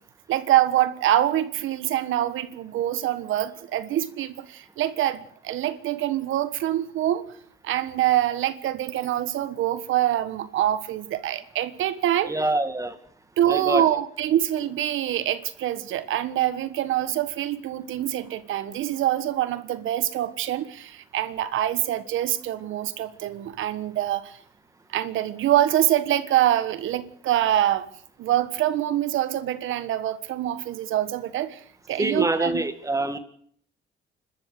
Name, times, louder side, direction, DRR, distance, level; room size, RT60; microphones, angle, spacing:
voice 1, 0.3-7.2 7.6-12.3 13.4-24.4 24.9-27.9 28.2-31.6 31.9-32.6, right 12 dB, 80° right, 1.5 m, -25 dB
voice 2, 12.3-13.0 13.5-13.9 32.0-33.2, right 2 dB, 15° right, 2.1 m, -25 dB
29.5 x 13.0 x 6.8 m
cardioid pair, 90°, 20 cm